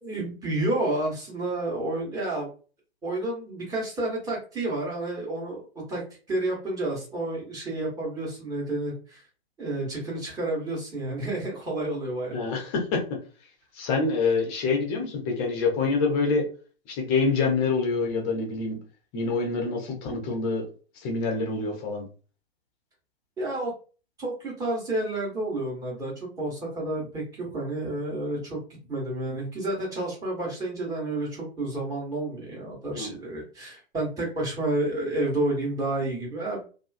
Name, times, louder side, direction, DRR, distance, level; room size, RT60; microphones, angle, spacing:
voice 1, 0.0-2.5 3.0-6.0 6.3-9.2 9.6-12.4 23.4-23.7 24.2-28.6 28.9-36.6, right 2 dB, 10° right, -3 dB, 0.9 m, -30 dB
voice 2, 12.3-13.2 13.7-16.5 16.9-18.8 19.1-20.7 21.0-22.0 32.9-33.1, left 4 dB, 20° left, 2 dB, 0.6 m, -26 dB
2.4 x 2.3 x 2.4 m, 0.37 s
figure-of-eight pair, 110°, 32 cm